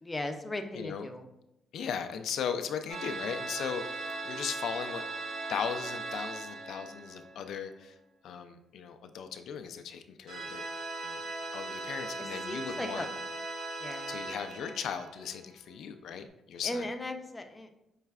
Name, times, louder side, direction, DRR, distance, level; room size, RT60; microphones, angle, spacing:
voice 1, 0.0-1.2 12.2-13.1 13.8-14.2 16.6-17.7, left 1 dB, 20° left, 5 dB, 0.5 m, -37 dB
voice 2, 0.7-1.1 1.7-5.0 5.5-7.9 8.2-10.7 11.0-11.2 11.5-13.1 14.1-16.8, left 7 dB, 75° left, 7 dB, 0.3 m, -37 dB
sound 1, 2.9-7.5 10.3-15.6, right 3 dB, 65° right, 1.0 m, -39 dB
5.6 x 3.1 x 2.3 m, 0.86 s
cardioid pair, 90°, 0 cm